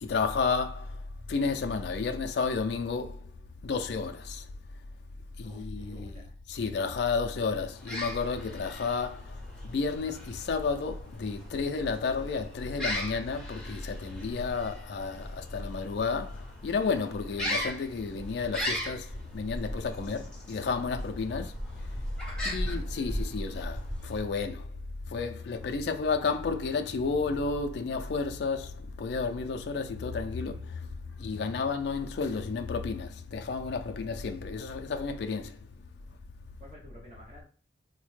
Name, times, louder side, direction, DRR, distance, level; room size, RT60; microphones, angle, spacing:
voice 1, 0.0-0.9 1.3-3.2 3.6-4.4 5.4-6.1 6.5-9.2 9.6-19.1 19.3-21.5 22.5-24.7 25.1-30.8 31.2-35.5, left 4 dB, 65° left, 0.3 m, -31 dB
voice 2, 5.4-6.4 21.3-21.5 22.2-23.3 25.5-25.8 26.1-26.2 31.2-31.6 36.6-37.4, equal, 40° right, 0.8 m, -53 dB
sound 1, 7.7-24.4, equal, 5° left, 0.7 m, -38 dB
4.0 x 2.1 x 3.1 m
head